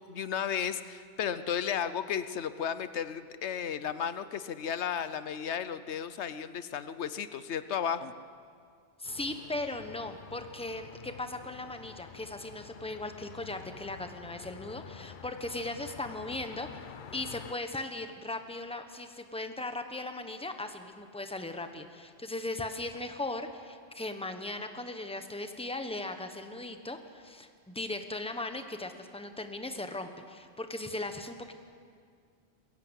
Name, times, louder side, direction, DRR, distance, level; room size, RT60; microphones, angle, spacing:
voice 1, 0.1-8.1, left 8 dB, 85° left, 12 dB, 1.1 m, -34 dB
sound 1, 9.0-17.5, left 7 dB, 55° left, 0.7 m, -49 dB
voice 2, 9.0-16.8 17.1-31.5, left 2 dB, 5° left, 7 dB, 1.1 m, -38 dB
21.5 x 17.0 x 8.2 m, 2.2 s
omnidirectional pair, 1.1 m